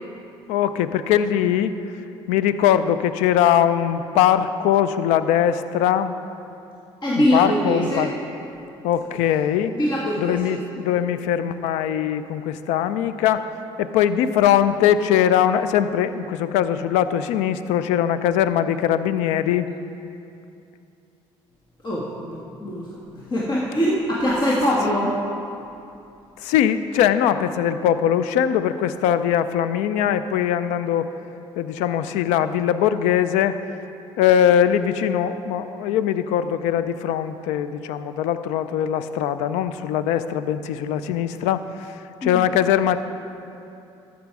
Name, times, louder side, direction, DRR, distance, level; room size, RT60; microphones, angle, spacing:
voice 1, 0.5-1.7 2.3-6.1 7.2-8.1 8.8-9.7 10.2-13.5 13.8-19.7 24.9-25.0 26.4-31.1 31.6-33.6 34.2-43.0, left 10 dB, 85° left, 12 dB, 0.4 m, -21 dB
voice 2, 7.0-8.1 9.7-10.6 21.8-25.2 42.2-42.4, equal, 40° left, -5 dB, 1.7 m, -23 dB
13.5 x 6.2 x 4.7 m, 2.7 s
supercardioid pair, 65°, 12 cm